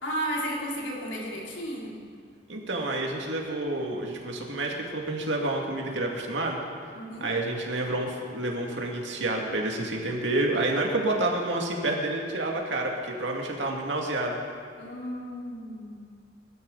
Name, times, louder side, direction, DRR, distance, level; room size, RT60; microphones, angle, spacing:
voice 1, 0.0-2.0 6.9-7.3 14.8-16.1, equal, 90° left, -3 dB, 3.4 m, -33 dB
voice 2, 2.5-6.6 7.2-14.4, right 2 dB, 75° right, 0 dB, 2.3 m, -29 dB
22.5 x 12.5 x 4.0 m, 2.2 s
head